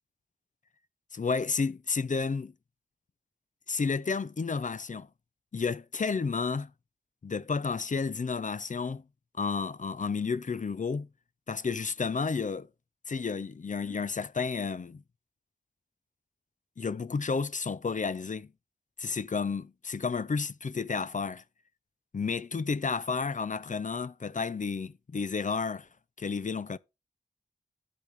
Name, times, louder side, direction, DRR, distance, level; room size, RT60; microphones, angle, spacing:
voice 1, 1.1-2.5 3.7-5.1 5.5-6.7 7.2-9.0 9.3-11.1 11.5-12.7 13.1-15.0 16.8-18.5 19.0-21.4 22.1-25.9 26.2-26.8, left 5 dB, 45° left, 0.5 m, -31 dB
12.0 x 5.2 x 3.2 m
cardioid pair, 45°, 18 cm